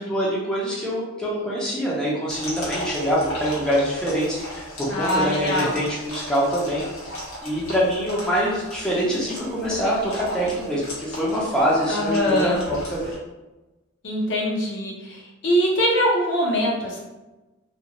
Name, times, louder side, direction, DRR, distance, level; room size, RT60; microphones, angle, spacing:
voice 1, 0.0-6.8 7.4-13.1, equal, 5° left, -7 dB, 0.5 m, -24 dB
sound 1, 2.3-13.2, left 1 dB, 85° left, 1.1 m, -36 dB
voice 2, 4.9-5.8 11.9-12.6 14.0-17.0, equal, 60° left, -3 dB, 0.6 m, -23 dB
2.5 x 2.3 x 2.9 m, 1.1 s
head